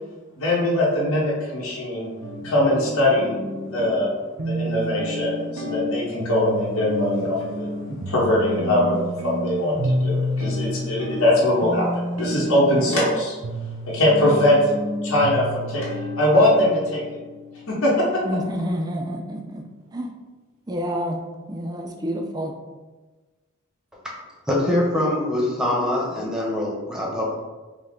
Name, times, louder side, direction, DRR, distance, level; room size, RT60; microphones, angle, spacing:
voice 1, 0.4-2.1 2.4-3.3 3.6-4.1 4.5-13.4 13.9-14.6 15.0-15.9 16.2-17.0 17.7-18.1, left 1 dB, 80° left, -6 dB, 1.2 m, -21 dB
sound 1, 2.2-18.5, equal, 75° right, 0.6 m, -30 dB
voice 2, 18.2-19.6 19.9-20.1 20.7-21.2 21.5-22.5, equal, 20° right, 3 dB, 0.3 m, -28 dB
voice 3, 24.5-27.4, left 1 dB, 5° right, -4 dB, 0.8 m, -23 dB
5.4 x 2.1 x 3.5 m, 1.3 s
head